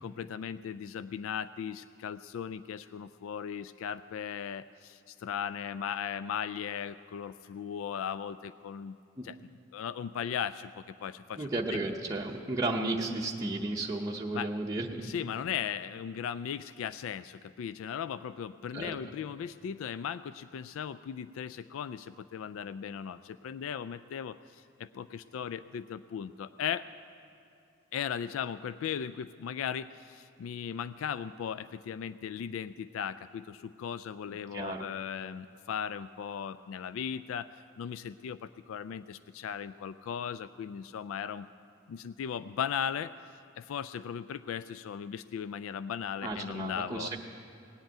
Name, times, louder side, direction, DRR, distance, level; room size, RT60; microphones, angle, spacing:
voice 1, 0.0-9.0 9.2-9.4 9.7-11.8 14.3-14.5 15.0-26.9 27.9-37.5 37.8-41.5 41.9-43.2 43.6-47.2, left 8 dB, 85° left, 15 dB, 0.3 m, -37 dB
voice 2, 11.4-15.1 18.7-19.0 34.3-34.9 46.2-47.2, right 2 dB, 15° right, -2 dB, 0.7 m, -33 dB
18.5 x 8.0 x 8.9 m, 2.7 s
head